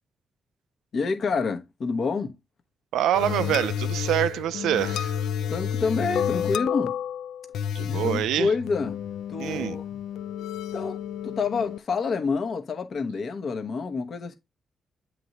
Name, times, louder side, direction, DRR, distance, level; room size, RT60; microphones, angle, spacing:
voice 1, 0.9-2.3 5.5-6.9 7.8-9.0 9.3-9.8 10.7-11.0 11.2-14.3, left 4 dB, 60° left, 1.0 m, -28 dB
voice 2, 2.9-5.1 7.7-8.5 9.4-9.8, right 11 dB, 90° right, 0.4 m, -25 dB
sound 1, 3.1-11.8, left 9 dB, 85° left, 0.3 m, -30 dB
7.8 x 3.3 x 3.9 m
supercardioid pair, 60°, 0 cm